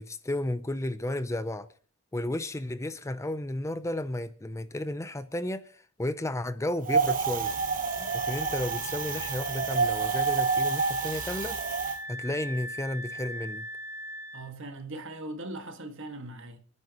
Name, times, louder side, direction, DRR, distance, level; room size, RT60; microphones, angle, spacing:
voice 1, 0.0-1.7 2.1-7.5 8.1-11.6 12.1-13.7, left 1 dB, 15° left, 0.5 m, -33 dB
Wind, 6.9-12.0, right 5 dB, 35° right, 1.1 m, -28 dB
Wind instrument woodwind instrument, 7.4-14.5, equal, 35° left, 1.5 m, -40 dB
voice 2, 14.3-16.6, right 2 dB, 60° right, 1.9 m, -40 dB
28.5 x 9.8 x 3.0 m
head